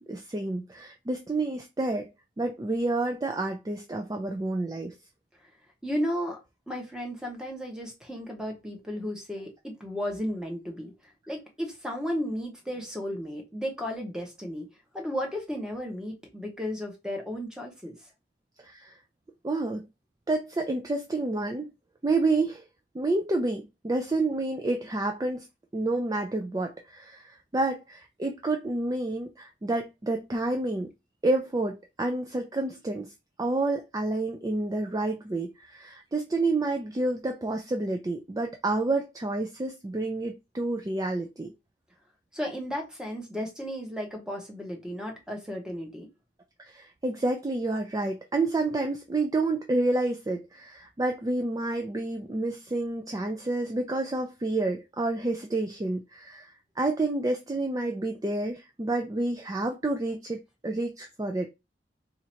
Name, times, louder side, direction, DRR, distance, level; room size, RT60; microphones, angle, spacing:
voice 1, 0.1-2.1 2.4-4.9 18.6-19.0 19.4-19.9 20.3-21.7 22.0-22.6 22.9-25.5 25.7-30.9 31.2-33.1 33.4-41.5 46.6-61.5, right 2 dB, 20° right, 0.4 m, -29 dB
voice 2, 5.8-6.4 6.7-10.9 11.3-14.7 14.9-18.0 42.3-46.1, equal, 5° right, 0.9 m, -34 dB
2.8 x 2.5 x 4.3 m
head